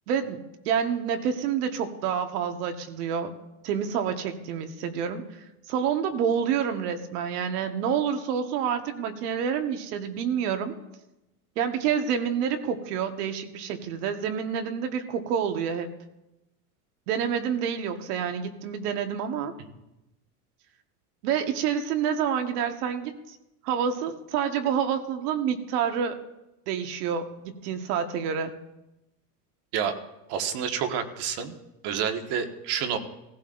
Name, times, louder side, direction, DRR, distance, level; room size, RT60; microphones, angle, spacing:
voice 1, 0.1-3.3 3.6-5.2 5.7-10.7 11.5-15.9 17.1-19.5 21.2-23.4 23.6-26.2 26.7-28.5, right 7 dB, 70° right, 6 dB, 1.5 m, -28 dB
voice 2, 30.3-31.5 31.8-33.0, right 8 dB, 55° right, 6 dB, 1.6 m, -28 dB
16.5 x 16.0 x 2.6 m, 0.93 s
supercardioid pair, 115°, 47 cm